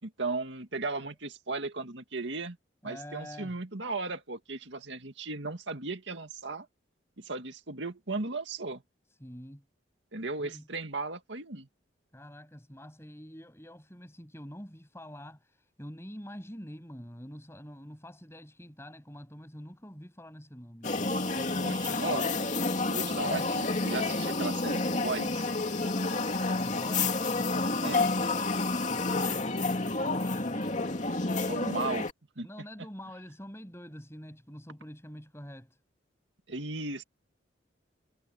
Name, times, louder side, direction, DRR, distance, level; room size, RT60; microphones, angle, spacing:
voice 1, 0.0-2.6 2.8-6.7 7.2-8.8 10.1-11.7 21.6-22.3 22.9-25.5 27.8-28.1 31.4-32.1 32.4-32.5 36.5-37.0, right 3 dB, 70° right, 2.1 m, -36 dB
voice 2, 2.8-3.6 9.2-9.6 10.4-10.7 12.1-22.2 26.5-30.7 32.4-35.8, equal, 15° left, 7.3 m, -46 dB
sound 1, 20.8-32.1, left 3 dB, 40° left, 2.6 m, -29 dB
head